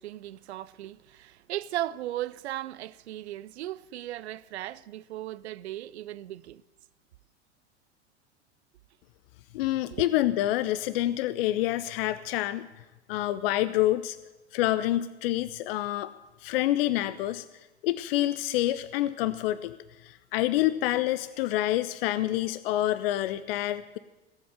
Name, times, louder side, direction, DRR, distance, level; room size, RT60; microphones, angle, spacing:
voice 1, 0.0-6.6 9.9-10.1, right 14 dB, 70° right, 0.6 m, -37 dB
voice 2, 9.5-12.7 13.1-14.2 14.5-16.1 16.4-17.5 17.8-19.8 20.0-24.0, left 14 dB, 55° left, 0.6 m, -27 dB
17.5 x 7.8 x 7.9 m
figure-of-eight pair, 85°, 34 cm